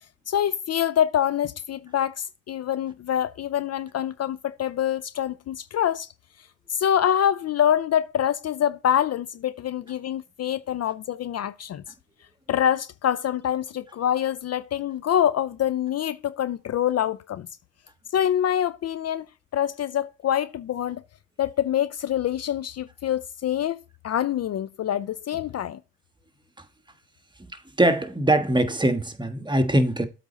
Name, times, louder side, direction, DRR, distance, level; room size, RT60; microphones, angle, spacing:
voice 1, 0.3-6.1 6.7-11.8 12.5-17.5 18.1-19.3 19.5-21.0 21.4-25.8, left 10 dB, 50° left, 0.5 m, -25 dB
voice 2, 27.4-30.1, right 1 dB, 15° right, 1.3 m, -22 dB
8.0 x 4.1 x 5.1 m
supercardioid pair, 60°, 34 cm